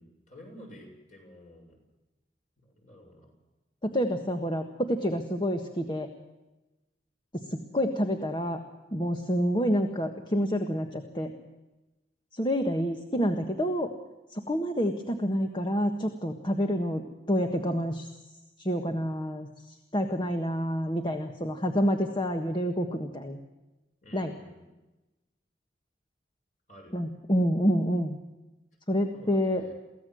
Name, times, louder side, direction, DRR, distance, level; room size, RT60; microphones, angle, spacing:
voice 1, 0.0-1.8 2.8-3.4 24.0-24.7 26.7-27.0 29.1-29.7, equal, 45° left, 1 dB, 7.3 m, -50 dB
voice 2, 3.8-6.1 7.3-8.6 8.9-11.3 12.3-13.9 14.3-18.1 18.6-23.4 24.1-24.3 26.9-28.2 28.9-29.6, equal, 25° left, 5 dB, 1.5 m, -28 dB
24.0 x 16.5 x 7.8 m, 1.0 s
head